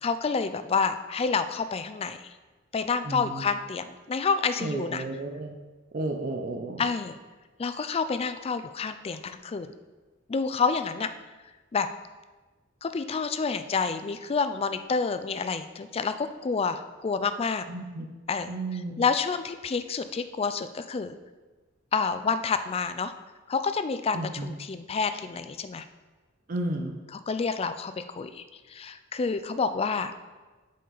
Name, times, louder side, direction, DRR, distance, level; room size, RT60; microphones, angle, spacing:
voice 1, 0.0-2.3 2.7-5.0 6.8-7.2 7.6-9.7 10.3-11.1 11.7-11.9 12.8-17.6 18.3-21.1 21.9-23.1 23.5-25.9 27.1-30.1, left 5 dB, 30° left, 11 dB, 0.3 m, -29 dB
voice 2, 3.0-3.4 4.6-5.6 5.9-6.8 17.7-18.1 18.5-19.0 24.1-24.5 26.5-26.9, right 2 dB, 45° right, 3 dB, 0.6 m, -32 dB
7.7 x 5.3 x 4.0 m, 1.3 s
head